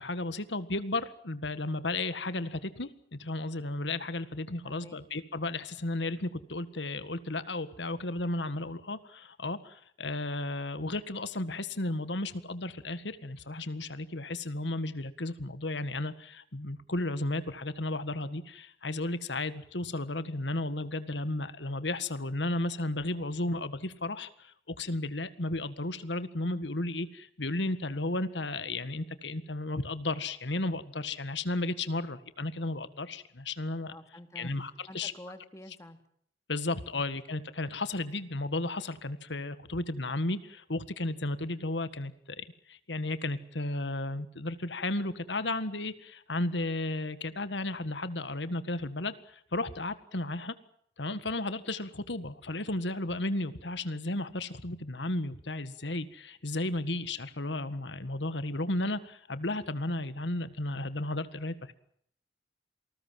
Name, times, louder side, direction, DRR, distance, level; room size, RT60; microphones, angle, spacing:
voice 1, 0.0-33.9 34.4-35.1 36.5-50.5 51.0-61.7, left 2 dB, 70° left, 13 dB, 1.7 m, -34 dB
voice 2, 4.6-5.0 33.9-34.5 34.9-36.0, left 1 dB, 15° left, 8 dB, 2.4 m, -48 dB
27.5 x 20.0 x 7.6 m, 0.65 s
head